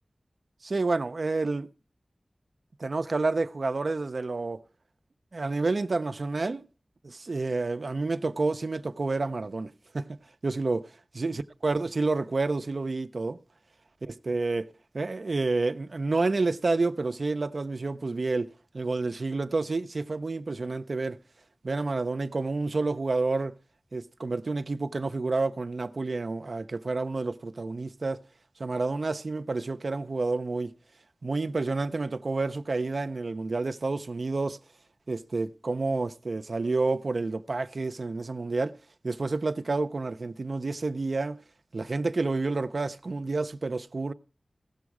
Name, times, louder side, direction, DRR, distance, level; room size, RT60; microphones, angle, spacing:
voice 1, 0.6-1.7 2.8-4.6 5.3-6.6 7.0-10.2 10.4-13.4 14.0-21.2 21.6-23.6 23.9-28.2 28.6-30.7 31.2-34.6 35.1-38.8 39.0-41.4 41.7-44.1, right 3 dB, 70° right, 0.4 m, -29 dB
16.0 x 6.2 x 4.7 m
cardioid pair, 45°, 0 cm